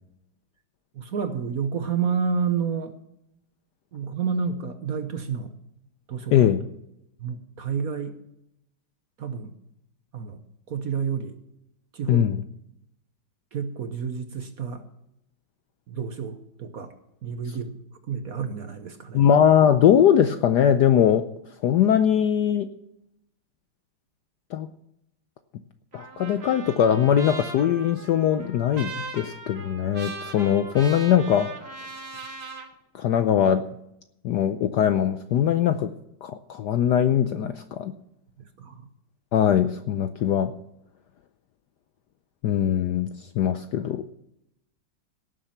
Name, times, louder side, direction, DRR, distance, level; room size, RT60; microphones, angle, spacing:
voice 1, 0.9-2.9 3.9-5.5 6.1-6.5 7.2-8.2 9.2-9.5 10.1-10.4 10.7-11.4 11.9-12.3 13.5-14.9 15.9-16.9 17.2-17.8 18.0-19.3 38.4-38.9, right 6 dB, 55° right, 8 dB, 1.2 m, -30 dB
voice 2, 6.3-6.6 12.1-12.4 19.1-21.2 21.6-22.7 24.5-24.7 25.9-31.5 32.9-33.6 34.2-35.9 36.2-37.9 39.3-40.5 42.4-44.0, left 9 dB, 75° left, 10 dB, 1.0 m, -21 dB
Trumpet, 25.9-32.7, right 3 dB, 30° right, 1.7 m, -39 dB
17.5 x 7.5 x 5.8 m, 0.81 s
omnidirectional pair, 2.3 m